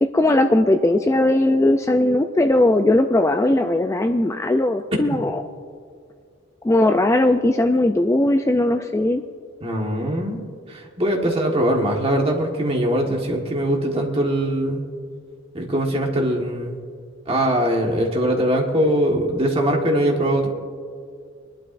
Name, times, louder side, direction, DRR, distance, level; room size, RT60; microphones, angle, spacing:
voice 1, 0.0-5.4 6.6-9.2, left 1 dB, 15° left, 6 dB, 0.3 m, -18 dB
voice 2, 9.6-10.4 10.7-14.9 15.5-16.8 17.3-20.5, right 1 dB, 30° right, 1 dB, 1.5 m, -21 dB
23.0 x 12.0 x 2.6 m, 2.1 s
head